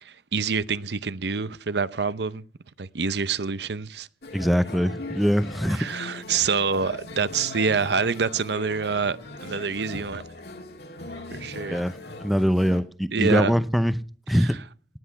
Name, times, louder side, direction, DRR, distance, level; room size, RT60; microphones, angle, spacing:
voice 1, 0.0-2.4 2.8-4.1 5.7-10.2 11.3-11.8 13.1-13.5 14.4-14.5, right 5 dB, 70° right, 0.7 m, -26 dB
sound 1, 4.2-12.8, left 2 dB, 65° left, 2.7 m, -40 dB
voice 2, 4.3-5.9 11.7-14.0 14.3-14.6, equal, ahead, 0.6 m, -23 dB
19.0 x 9.9 x 5.8 m
head